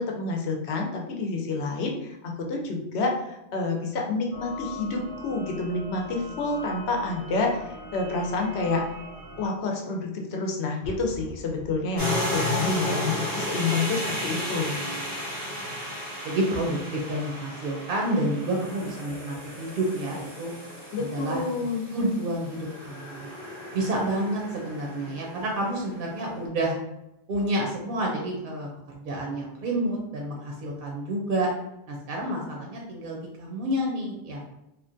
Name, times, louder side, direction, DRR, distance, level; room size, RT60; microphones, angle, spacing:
voice 1, 0.0-8.8 9.4-14.9 20.9-21.9, left 3 dB, 80° left, 1 dB, 0.9 m, -28 dB
sound 1, 4.3-9.5, left 1 dB, 35° right, 0.3 m, -41 dB
Explosion, 10.8-12.6, right 1 dB, 45° left, 0.5 m, -43 dB
sound 2, 12.0-26.1, equal, 15° left, 0.8 m, -34 dB
voice 2, 16.2-20.5 21.0-23.3 23.7-26.8 27.3-31.5 31.9-34.5, right 1 dB, 60° right, -1 dB, 0.7 m, -29 dB
2.9 x 2.2 x 2.5 m, 0.87 s
omnidirectional pair, 1.1 m